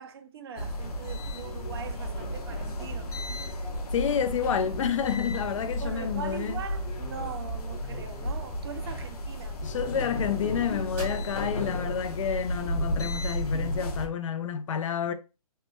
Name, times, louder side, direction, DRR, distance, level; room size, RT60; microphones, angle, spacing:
voice 1, 0.0-3.1 5.8-9.6, right 6 dB, 40° right, 0.4 m, -41 dB
sound 1, 0.6-14.1, equal, 90° left, 0.8 m, -33 dB
voice 2, 3.9-6.6 9.6-15.1, left 8 dB, 60° left, 0.4 m, -29 dB
sound 2, 8.5-8.7 9.0-9.6 10.0-13.2, right 1 dB, 10° right, 0.7 m, -48 dB
3.2 x 2.1 x 2.9 m
hypercardioid pair, 165°, 19 cm